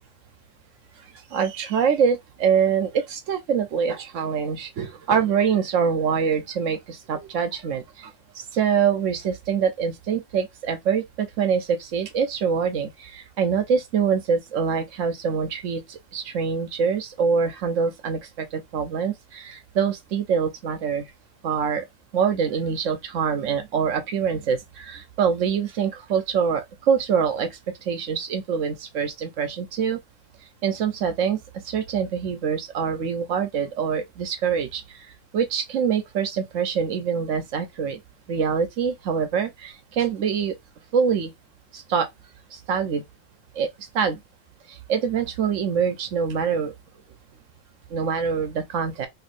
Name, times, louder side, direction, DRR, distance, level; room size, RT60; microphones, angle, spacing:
voice 1, 1.3-8.1 8.5-21.0 21.4-21.8 22.1-26.6 26.9-27.5 27.9-30.0 30.6-31.4 31.7-34.8 35.3-38.0 38.3-40.5 40.9-41.3 41.7-42.1 42.7-43.0 43.6-43.7 43.9-44.2 44.9-46.7 47.9-49.1, right 6 dB, 85° right, 1.2 m, -24 dB
3.2 x 3.1 x 2.6 m
omnidirectional pair, 1.3 m